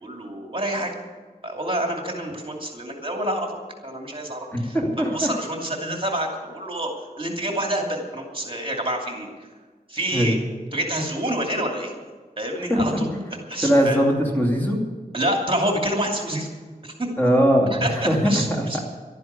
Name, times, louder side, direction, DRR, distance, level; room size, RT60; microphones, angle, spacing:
voice 1, 0.0-0.9 1.4-3.6 3.8-6.9 7.2-9.3 9.9-10.4 10.7-11.9 12.4-13.1 13.5-14.0 15.1-16.5 16.8-17.1 17.7-18.8, right 1 dB, 35° right, 1 dB, 2.7 m, -27 dB
voice 2, 4.5-5.3 10.1-10.4 12.7-12.8 13.6-14.8 17.2-18.3 18.6-18.8, equal, 10° left, 0 dB, 2.6 m, -20 dB
12.0 x 10.5 x 8.3 m, 1.4 s
wide cardioid pair, 65°, 16 cm